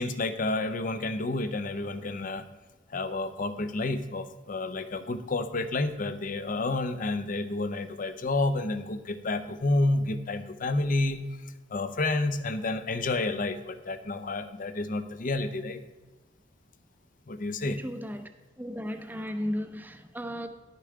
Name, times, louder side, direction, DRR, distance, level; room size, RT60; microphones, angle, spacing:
voice 1, 0.0-2.4 2.9-11.2 11.7-15.8 17.3-17.8, left 2 dB, 45° left, 10 dB, 0.6 m, -30 dB
voice 2, 17.7-18.3 18.6-20.5, equal, 10° right, 7 dB, 0.7 m, -35 dB
10.5 x 6.8 x 4.8 m, 1.2 s
head